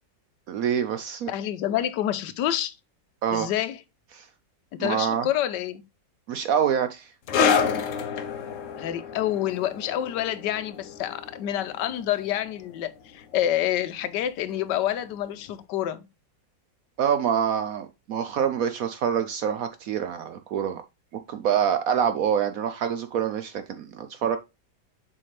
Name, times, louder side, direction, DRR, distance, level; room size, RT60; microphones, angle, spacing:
voice 1, 0.5-1.3 3.2-3.5 4.2-4.3 4.8-5.3 6.3-7.1 17.0-20.8 21.3-24.4, right 8 dB, 70° right, 0.8 m, -26 dB
voice 2, 1.3-2.7 3.3-3.8 4.7-5.8 8.8-16.1, left 12 dB, 75° left, 1.3 m, -28 dB
sound 1, 7.3-14.3 14.5-14.8 15.5-15.6, left 6 dB, 60° left, 0.9 m, -29 dB
7.2 x 4.3 x 3.2 m
omnidirectional pair, 2.0 m